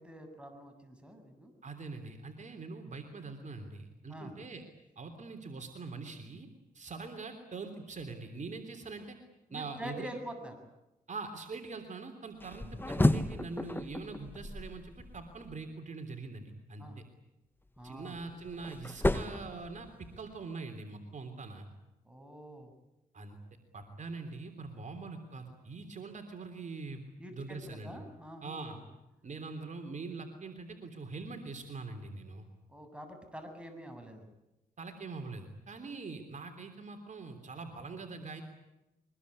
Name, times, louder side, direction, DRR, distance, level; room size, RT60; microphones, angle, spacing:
voice 1, 0.0-1.5 4.1-4.3 9.5-10.5 16.8-17.0 17.8-18.2 22.0-22.7 27.2-28.8 32.7-34.3, equal, 5° right, 5 dB, 7.2 m, -46 dB
voice 2, 1.6-4.6 4.9-6.5 6.7-9.2 9.5-10.1 11.1-16.9 17.8-21.7 23.1-23.4 23.7-27.0 27.3-27.9 28.4-28.8 29.2-32.4 34.8-38.4, right 3 dB, 50° right, 5 dB, 3.4 m, -43 dB
sound 1, 12.4-15.6 17.8-20.3, left 2 dB, 15° left, 1.3 m, -33 dB
24.0 x 21.0 x 9.7 m, 0.93 s
cardioid pair, 65°, 16 cm